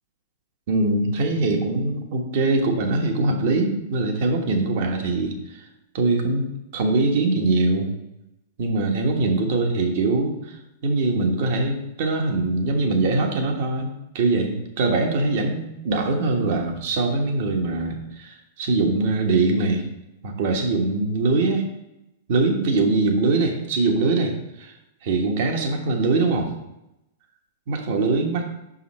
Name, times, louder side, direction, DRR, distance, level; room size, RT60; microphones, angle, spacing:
voice 1, 0.7-5.6 5.9-6.5 6.7-7.9 8.6-19.8 20.2-21.6 22.3-24.7 25.0-26.5 27.7-28.4, right 3 dB, 60° right, 3 dB, 1.3 m, -22 dB
5.5 x 5.5 x 4.2 m, 0.90 s
hypercardioid pair, 125°, 0 cm